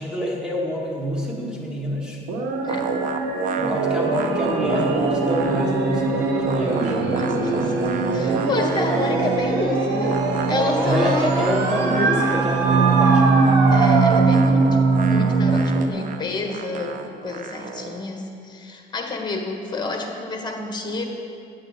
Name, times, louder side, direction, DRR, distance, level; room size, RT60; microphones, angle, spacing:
voice 1, 0.0-2.2 3.6-6.9 10.8-13.5, equal, 5° right, -3 dB, 1.6 m, -27 dB
sound 1, 2.3-15.9, right 3 dB, 90° right, 0.9 m, -21 dB
sound 2, 2.7-6.0 6.2-9.5 10.0-18.0, right 5 dB, 55° right, 0.6 m, -32 dB
voice 2, 7.1-7.7 8.1-10.2 10.5-11.5 13.7-17.0 17.2-21.0, left 3 dB, 25° left, 3 dB, 1.2 m, -29 dB
9.4 x 8.0 x 4.1 m, 2.6 s
cardioid pair, 110°, 17 cm